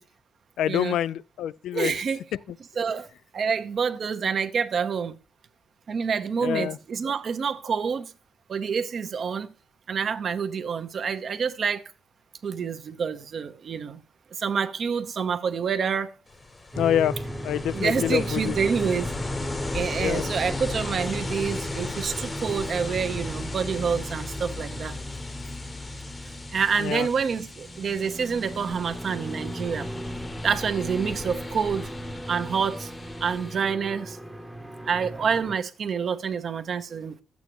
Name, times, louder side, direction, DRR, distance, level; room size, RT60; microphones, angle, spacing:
voice 1, 0.6-1.9 6.4-6.8 16.8-17.2 17.4-18.6 20.0-20.3 26.8-27.1, left 10 dB, 85° left, 0.3 m, -26 dB
voice 2, 1.7-2.2 2.8-3.1 3.3-5.1 5.9-8.1 8.5-9.5 9.9-11.8 12.4-14.0 14.4-16.1 17.7-19.1 19.7-24.9 26.5-29.9 30.4-31.9 32.3-32.9 33.2-34.2 34.8-37.2, right 6 dB, 50° right, 0.9 m, -27 dB
Ocean, 16.3-33.6, left 3 dB, 25° left, 0.9 m, -37 dB
sound 1, 16.7-35.6, equal, 5° right, 0.9 m, -36 dB
12.0 x 8.3 x 3.0 m
cardioid pair, 105°, 0 cm